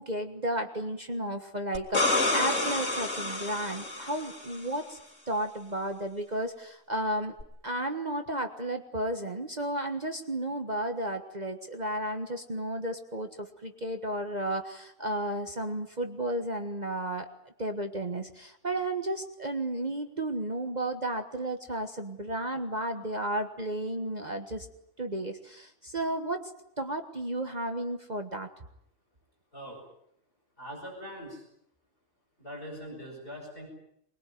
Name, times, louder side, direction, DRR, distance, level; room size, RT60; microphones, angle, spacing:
voice 1, 0.0-5.0 5.3-7.3 7.6-24.7 25.0-26.5 26.8-28.5, right 1 dB, 35° right, 6 dB, 1.6 m, -33 dB
sound 1, 1.7-4.6 7.4-7.5, left 2 dB, 80° left, 3.7 m, -29 dB
voice 2, 30.6-31.5 32.4-33.7, equal, 45° left, -1 dB, 7.7 m, -42 dB
24.0 x 22.0 x 9.3 m, 0.74 s
omnidirectional pair, 1.3 m